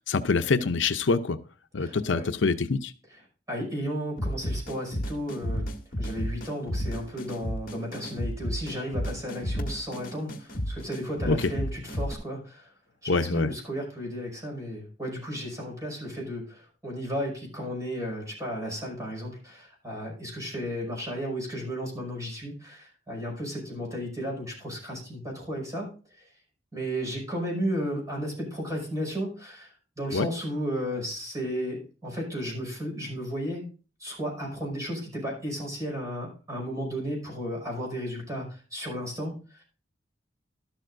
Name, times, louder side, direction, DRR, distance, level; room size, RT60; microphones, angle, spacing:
voice 1, 0.1-1.4 1.7-2.9 11.3-11.4 13.1-13.5 30.1-30.3, left 4 dB, 70° left, 9 dB, 0.6 m, -25 dB
voice 2, 1.8-2.3 3.5-5.7 6.0-12.7 13.0-26.2 26.7-33.7 34.0-39.6, equal, 20° right, -2 dB, 5.5 m, -34 dB
sound 1, 4.2-12.1, equal, 50° left, 1.6 m, -32 dB
12.5 x 12.0 x 2.6 m, 0.37 s
head